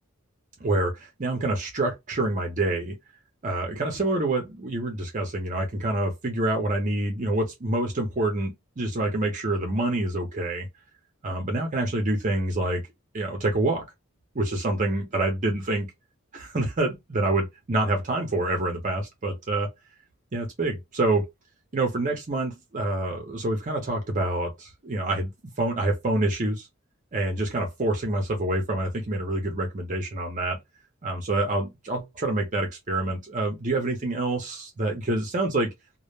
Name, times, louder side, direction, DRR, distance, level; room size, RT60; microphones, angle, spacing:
voice 1, 0.6-2.9 3.4-10.7 11.2-12.8 13.1-13.8 14.3-15.9 16.3-19.7 20.3-21.3 21.7-25.3 25.6-26.7 27.1-30.6 31.0-35.7, right 2 dB, 35° right, 0.6 m, -27 dB
2.2 x 2.0 x 3.1 m
head